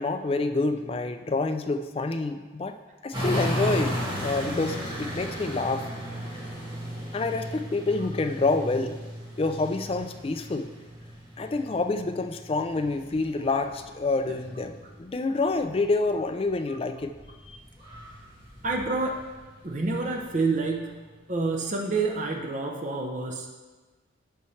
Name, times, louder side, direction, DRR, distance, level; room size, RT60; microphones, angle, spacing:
voice 1, 0.0-2.8 3.0-5.9 7.1-9.0 9.4-10.7 11.4-14.7 15.0-17.2 17.4-17.6, left 3 dB, 30° left, 7 dB, 0.3 m, -27 dB
sound 1, 3.1-15.1 15.4-20.3 20.9-21.0, equal, 25° right, 1.7 m, -35 dB
voice 2, 18.6-19.2 19.6-21.0 21.3-23.5, right 3 dB, 40° right, 1 dB, 0.6 m, -28 dB
11.0 x 4.2 x 3.2 m, 1.3 s
head